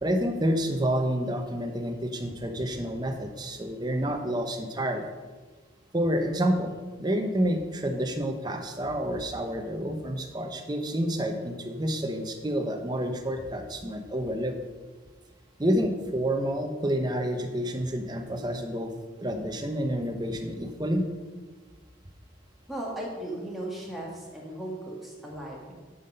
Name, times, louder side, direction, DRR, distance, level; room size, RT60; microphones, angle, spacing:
voice 1, 0.0-5.1 5.9-14.6 15.6-18.9 19.2-21.1, equal, 20° right, 5 dB, 0.8 m, -29 dB
voice 2, 22.7-25.7, right 1 dB, ahead, -4 dB, 1.8 m, -36 dB
11.5 x 5.7 x 5.4 m, 1.4 s
head